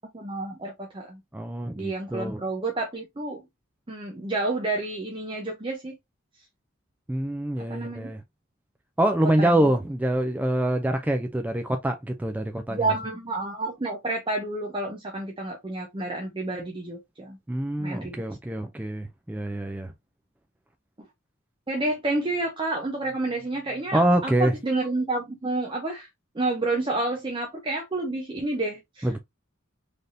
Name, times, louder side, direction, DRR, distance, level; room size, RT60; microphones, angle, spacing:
voice 1, 0.1-1.2 1.8-3.5 3.9-6.0 7.7-8.1 9.4-9.5 12.7-17.4 17.8-18.2 21.7-26.1 26.3-29.2, right 2 dB, 25° right, 0.7 m, -29 dB
voice 2, 1.3-2.4 7.1-8.2 9.0-12.9 17.5-19.9 23.9-24.5 29.0-29.2, right 1 dB, 10° right, 0.3 m, -25 dB
3.9 x 3.4 x 2.6 m
head